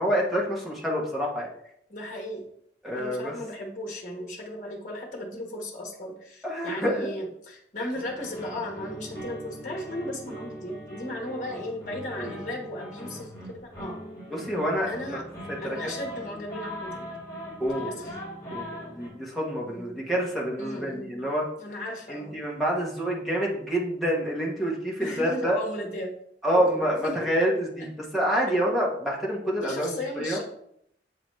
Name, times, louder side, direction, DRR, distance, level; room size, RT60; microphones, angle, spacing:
voice 1, 0.0-1.5 2.8-3.3 6.4-7.1 12.2-12.4 14.3-15.2 15.5-15.8 17.6-18.1 18.5-21.5 22.1-25.6 26.4-30.4, equal, ahead, -4 dB, 1.1 m, -27 dB
voice 2, 1.9-2.4 2.9-14.0 14.8-15.2 15.6-17.1 17.7-18.1 19.7-20.0 20.6-21.2 21.6-22.4 25.0-26.1 26.5-27.3 27.8-27.9 28.4-28.7 29.6-30.4, left 1 dB, 45° left, 0 dB, 1.2 m, -36 dB
sound 1, 7.9-19.1, equal, 20° left, 2.5 m, -40 dB
7.6 x 4.0 x 3.1 m, 0.71 s
head